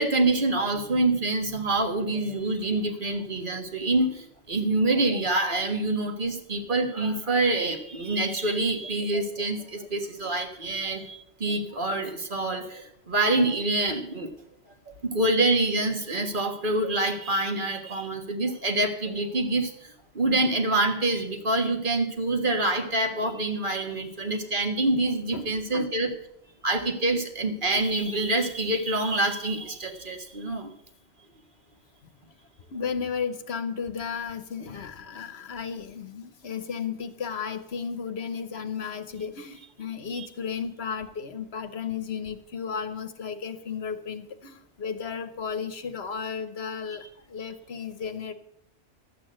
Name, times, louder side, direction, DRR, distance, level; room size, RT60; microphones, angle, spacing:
voice 1, 0.0-14.3 15.0-26.1 26.6-30.7 40.1-40.3, right 2 dB, 45° right, 5 dB, 1.7 m, -26 dB
voice 2, 25.3-25.9 32.7-48.3, left 6 dB, 65° left, 10 dB, 1.2 m, -34 dB
12.0 x 8.5 x 7.6 m, 0.75 s
omnidirectional pair, 1.2 m